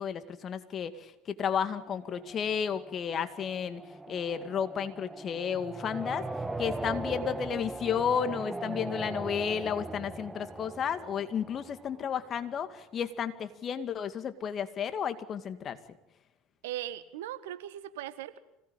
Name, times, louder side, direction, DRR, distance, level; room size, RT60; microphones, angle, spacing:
voice 1, 0.0-3.8 4.1-6.3 6.6-15.8, left 7 dB, 40° left, 10 dB, 2.2 m, -32 dB
sound 1, 1.7-12.5, right 2 dB, 10° right, 1.2 m, -40 dB
voice 2, 16.6-18.4, right 13 dB, 75° right, 13 dB, 1.5 m, -39 dB
25.5 x 18.5 x 9.0 m, 0.87 s
hypercardioid pair, 75°, 0 cm